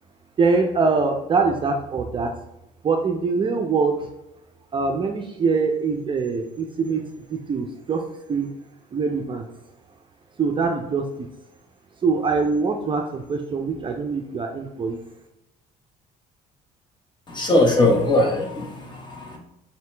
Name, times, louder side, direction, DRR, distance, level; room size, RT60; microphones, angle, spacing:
voice 1, 0.4-2.3 2.8-4.1 4.7-8.5 8.9-9.4 10.4-11.0 12.0-15.0, right 4 dB, 30° right, 3 dB, 0.4 m, -23 dB
voice 2, 17.3-19.4, left 2 dB, 25° left, 0 dB, 1.1 m, -20 dB
4.4 x 2.8 x 3.2 m, 0.86 s
cardioid pair, 110°, 17 cm